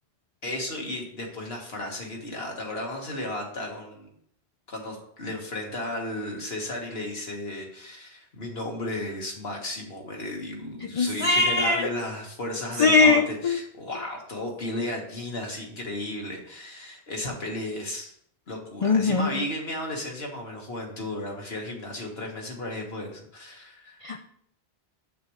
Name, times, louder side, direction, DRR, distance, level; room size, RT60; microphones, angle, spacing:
voice 1, 0.4-4.1 4.7-18.1 18.5-24.0, left 1 dB, 65° left, 0 dB, 1.9 m, -34 dB
voice 2, 10.9-11.9 12.8-13.6 18.8-19.3 24.0-24.2, left 3 dB, 45° left, 5 dB, 0.4 m, -21 dB
9.1 x 7.7 x 3.2 m, 0.68 s
omnidirectional pair, 1.1 m